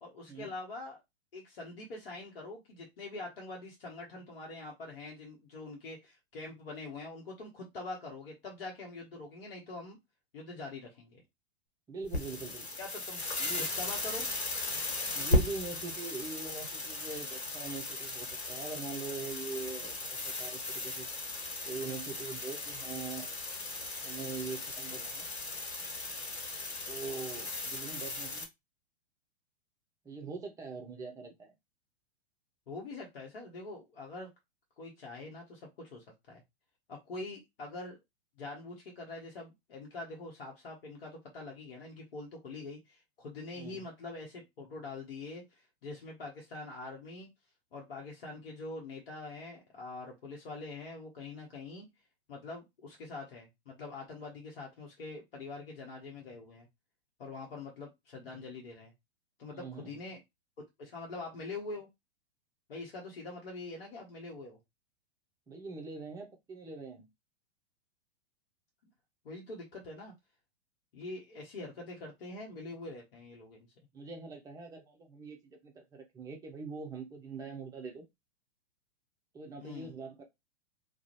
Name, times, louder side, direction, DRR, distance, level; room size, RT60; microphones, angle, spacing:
voice 1, 0.0-1.0 1.3-10.0 10.3-11.2 12.8-13.2 13.8-14.3 32.7-34.3 34.8-36.4 36.9-38.0 38.4-47.3 47.7-51.9 52.3-56.7 57.2-58.9 59.4-60.2 60.8-61.9 62.7-64.6 69.2-70.1 70.9-73.6 79.6-79.9, left 3 dB, 60° left, 0.9 m, -44 dB
voice 2, 11.9-12.7 13.4-13.6 15.1-21.1 21.6-23.3 24.0-25.3 26.9-28.5 30.0-31.5 43.5-43.9 59.5-60.1 65.5-67.0 73.9-78.0 79.3-80.2, right 4 dB, 10° right, 0.5 m, -42 dB
sound 1, 12.0-28.4, left 2 dB, 75° left, 1.0 m, -36 dB
2.4 x 2.1 x 3.0 m
figure-of-eight pair, 105°, 32 cm